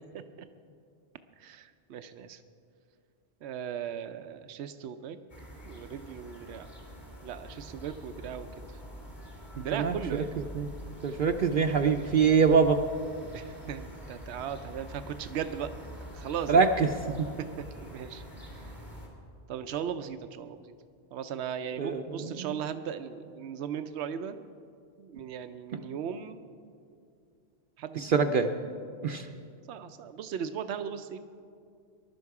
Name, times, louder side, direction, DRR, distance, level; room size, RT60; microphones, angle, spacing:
voice 1, 1.4-2.4 3.4-5.2 5.6-6.7 7.2-8.8 9.6-10.3 13.2-15.7 16.1-16.6 17.4-18.2 18.5-18.7 19.5-20.7 21.1-24.5 25.0-26.4 27.8-28.2 29.7-31.2, right 8 dB, 90° right, 10 dB, 0.9 m, -37 dB
sound 1, 5.3-19.1, equal, 45° left, 3.1 m, -45 dB
voice 2, 9.6-10.0 10.5-10.7 11.0-12.8 16.5-16.9 21.8-22.5 28.0-28.5 29.0-29.3, right 5 dB, 60° right, 5 dB, 0.7 m, -24 dB
20.5 x 11.5 x 4.8 m, 2.4 s
omnidirectional pair, 1.1 m